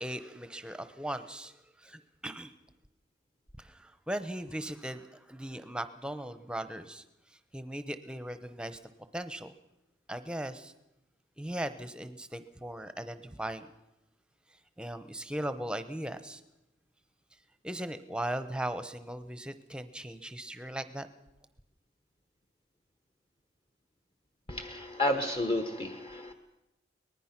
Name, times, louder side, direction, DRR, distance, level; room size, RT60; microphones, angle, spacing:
voice 1, 0.0-1.5 1.8-2.5 3.6-7.0 7.5-8.8 9.1-9.5 10.1-10.7 11.4-13.7 14.8-16.4 17.6-21.1, right 1 dB, 5° right, 11 dB, 0.9 m, -38 dB
voice 2, 24.5-26.3, left 1 dB, 25° left, 5 dB, 1.2 m, -31 dB
24.0 x 19.5 x 6.0 m, 0.93 s
head